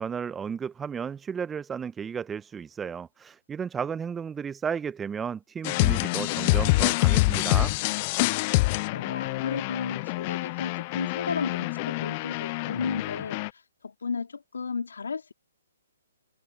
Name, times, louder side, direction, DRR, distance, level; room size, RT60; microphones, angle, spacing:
voice 1, 0.0-7.8, right 7 dB, 10° right, 0.5 m, -33 dB
sound 1, 5.6-13.5, left 23 dB, 35° left, 0.5 m, -26 dB
voice 2, 8.9-15.3, left 5 dB, 75° left, 3.2 m, -34 dB
figure-of-eight pair, 135°, 0 cm